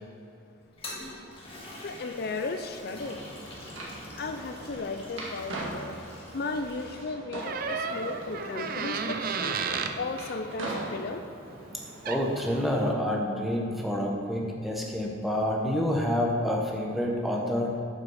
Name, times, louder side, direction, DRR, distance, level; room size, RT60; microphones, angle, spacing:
Toilet flush, 0.6-7.0, left 1 dB, 25° left, 1.8 m, -45 dB
voice 1, 1.8-3.3 4.2-6.0 6.3-9.6 10.0-11.2, left 3 dB, 50° left, 6 dB, 0.4 m, -35 dB
sound 1, 3.0-12.7, right 1 dB, 75° right, 2.0 m, -41 dB
Door, 7.4-10.0 11.8-11.9 12.0-12.4, right 5 dB, 45° right, 0.5 m, -32 dB
voice 2, 12.0-17.8, left 1 dB, ahead, -1 dB, 1.0 m, -28 dB
9.0 x 5.8 x 6.4 m, 2.7 s
head